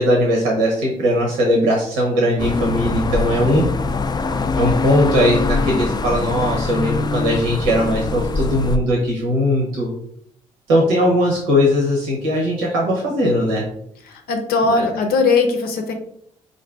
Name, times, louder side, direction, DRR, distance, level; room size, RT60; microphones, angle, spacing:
voice 1, 0.0-3.7 4.6-9.9 10.7-13.6 14.6-14.9, equal, 85° right, -1 dB, 0.8 m, -19 dB
sound 1, 2.4-8.8, left 3 dB, 25° left, 0.4 m, -23 dB
voice 2, 14.1-15.9, left 4 dB, 70° left, 4 dB, 0.8 m, -19 dB
3.9 x 2.6 x 3.5 m, 0.68 s
hypercardioid pair, 50°, 16 cm